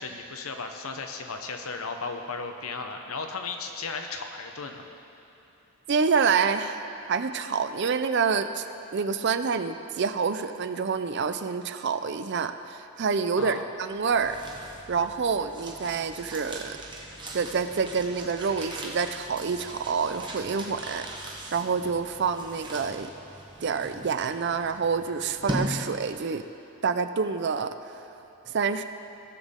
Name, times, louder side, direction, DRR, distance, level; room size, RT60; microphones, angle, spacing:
voice 1, 0.0-4.9 13.3-13.6, left 4 dB, 75° left, 5 dB, 0.9 m, -35 dB
voice 2, 5.9-6.8 7.1-8.6 8.9-14.4 14.9-16.8 17.3-21.1 21.5-23.1 23.6-26.4 26.8-28.0 28.5-28.8, right 5 dB, 55° right, 10 dB, 0.5 m, -27 dB
sound 1, 13.9-26.4, right 1 dB, 20° right, 1.1 m, -39 dB
18.5 x 7.2 x 3.7 m, 3.0 s
head